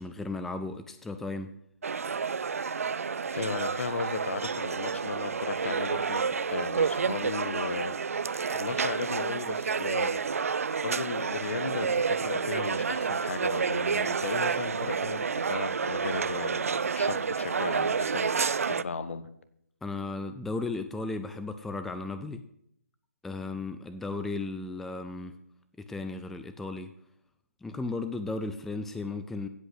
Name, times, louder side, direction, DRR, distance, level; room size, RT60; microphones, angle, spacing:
voice 1, 0.0-1.5 19.8-22.4 23.2-25.4 25.8-26.9 27.6-29.5, left 3 dB, 5° left, 9 dB, 0.4 m, -35 dB
sound 1, 1.8-18.8, right 5 dB, 65° right, 0.5 m, -29 dB
voice 2, 3.3-8.0 8.5-10.2 10.8-18.3 18.6-19.3, left 5 dB, 55° left, 12 dB, 1.2 m, -36 dB
16.0 x 5.4 x 7.8 m, 0.76 s
figure-of-eight pair, 140°, 8 cm